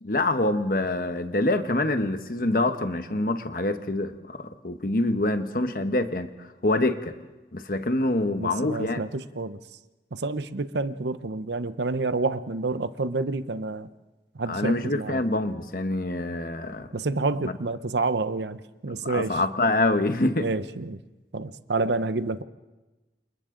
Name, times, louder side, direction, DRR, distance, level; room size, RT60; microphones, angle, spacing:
voice 1, 0.0-6.3 6.6-7.1 7.5-9.0 14.5-16.9 17.4-17.6 18.9-20.5, left 2 dB, 50° left, 8 dB, 1.2 m, -26 dB
voice 2, 8.4-9.6 10.1-13.9 14.4-15.2 16.9-19.4 20.4-21.0 21.3-22.4, right 3 dB, 80° right, 13 dB, 0.8 m, -29 dB
29.0 x 28.0 x 3.9 m, 1.2 s
head